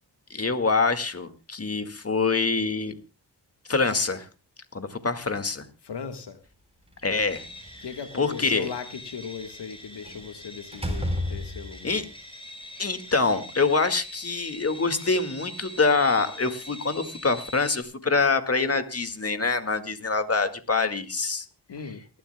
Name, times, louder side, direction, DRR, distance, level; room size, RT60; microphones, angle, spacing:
voice 1, 0.3-2.9 3.7-4.3 4.7-5.7 7.0-7.4 8.2-8.7 11.8-12.0 12.8-21.5, left 4 dB, 35° left, 8 dB, 2.0 m, -25 dB
voice 2, 5.8-6.4 7.8-12.0 21.7-22.0, left 6 dB, 70° left, 8 dB, 1.5 m, -38 dB
Slam, 6.9-7.9 10.0-10.3 10.7-11.9, left 1 dB, 15° right, 4.1 m, -31 dB
sound 1, 7.3-17.8, left 1 dB, 10° left, 5.5 m, -44 dB
29.0 x 11.5 x 2.2 m, 0.29 s
cardioid pair, 55°, 43 cm